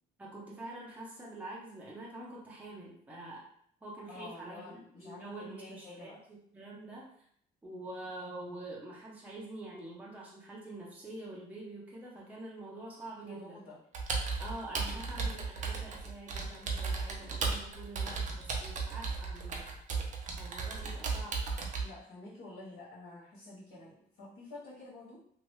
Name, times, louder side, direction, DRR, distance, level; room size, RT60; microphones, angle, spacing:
voice 1, 0.2-3.4 3.8-7.1 7.6-13.6 14.4-19.7 20.4-21.4, right 2 dB, 10° right, -5 dB, 0.8 m, -46 dB
voice 2, 4.1-6.2 13.2-13.8 21.8-25.2, left 2 dB, 80° left, -10 dB, 1.5 m, -49 dB
Computer keyboard, 13.9-21.8, right 4 dB, 45° right, 0.6 m, -35 dB
3.0 x 2.5 x 3.1 m, 0.66 s
cardioid pair, 110°, 17 cm